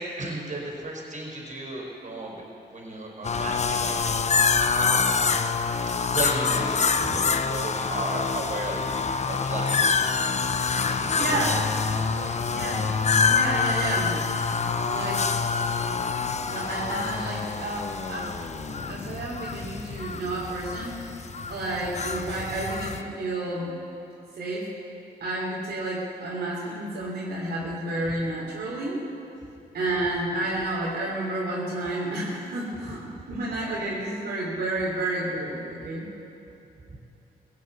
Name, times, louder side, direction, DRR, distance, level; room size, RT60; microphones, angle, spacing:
voice 1, 0.0-5.3 6.1-10.0 10.7-11.7 12.1-12.4 36.9-37.0, right 2 dB, 50° right, -1 dB, 4.4 m, -35 dB
sound 1, 3.2-23.0, left 5 dB, 45° left, 0.8 m, -26 dB
voice 2, 11.1-11.6 11.9-12.0 12.5-12.9 13.3-14.2 14.9-15.3 16.5-18.3 18.9-20.9 21.5-23.8 24.3-24.7 25.2-29.0 29.7-36.1, right 2 dB, 75° right, -5 dB, 3.0 m, -30 dB
17.0 x 8.4 x 8.1 m, 2.9 s
cardioid pair, 60°, 17 cm